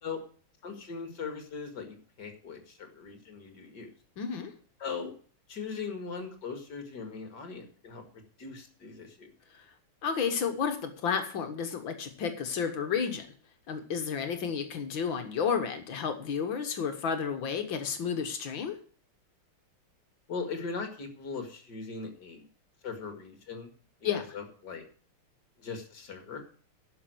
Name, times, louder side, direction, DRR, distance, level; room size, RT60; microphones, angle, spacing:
voice 1, 0.6-3.9 4.8-5.1 5.5-9.3 20.3-22.5 22.8-23.7 24.1-24.9 25.6-26.4, left 5 dB, 55° left, 5 dB, 2.5 m, -39 dB
voice 2, 4.2-4.5 9.5-9.7 10.0-13.2 13.7-18.8 24.0-24.2, left 6 dB, 70° left, 7 dB, 1.9 m, -31 dB
11.0 x 6.3 x 7.8 m, 0.43 s
omnidirectional pair, 2.3 m